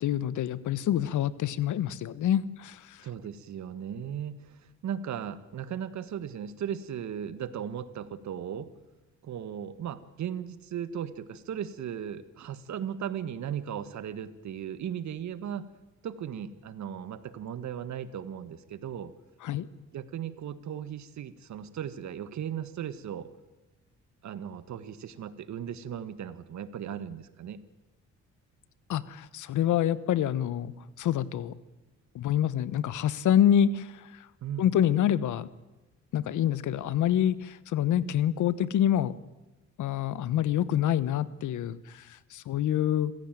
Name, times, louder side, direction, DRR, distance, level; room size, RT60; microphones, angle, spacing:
voice 1, 0.0-3.0 19.4-19.7 28.9-30.7 31.0-31.5 32.1-34.3 34.6-35.5 36.1-39.1 39.8-43.1, left 10 dB, 75° left, 17 dB, 1.2 m, -27 dB
voice 2, 3.0-4.6 4.8-8.7 9.2-15.7 16.0-19.1 19.9-23.3 24.2-27.6 34.4-34.7, right 9 dB, 65° right, 13 dB, 1.7 m, -37 dB
26.5 x 15.5 x 9.2 m, 1.1 s
cardioid pair, 90°, 30 cm